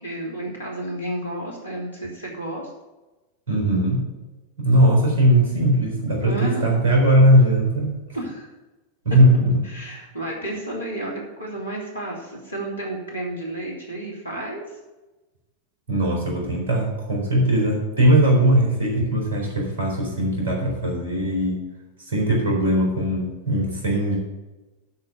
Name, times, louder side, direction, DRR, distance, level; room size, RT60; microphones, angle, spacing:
voice 1, 0.0-2.7 6.2-6.8 8.1-8.5 9.6-14.6, right 1 dB, 80° left, -2 dB, 3.1 m, -31 dB
voice 2, 3.5-4.0 4.6-8.0 9.0-9.6 15.9-21.6 22.1-24.2, right 1 dB, 60° right, -1 dB, 4.0 m, -19 dB
11.5 x 4.4 x 8.2 m, 1.1 s
figure-of-eight pair, 90°, 0 cm